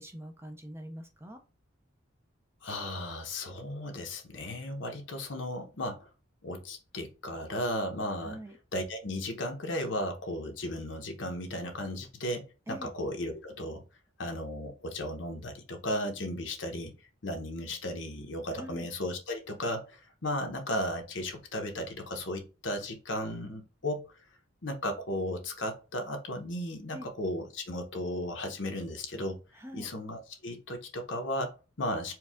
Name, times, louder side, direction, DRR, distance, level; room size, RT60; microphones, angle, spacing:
voice 1, 0.0-1.4 8.2-8.5 12.7-12.9 18.5-18.9 26.9-27.1 29.5-29.9, equal, 15° right, 5 dB, 0.6 m, -43 dB
voice 2, 2.6-6.1 6.4-8.4 8.7-13.8 14.2-16.9 17.2-24.0 24.6-29.4 29.7-32.1, left 1 dB, 65° left, 4 dB, 1.0 m, -35 dB
4.6 x 2.4 x 3.5 m, 0.32 s
head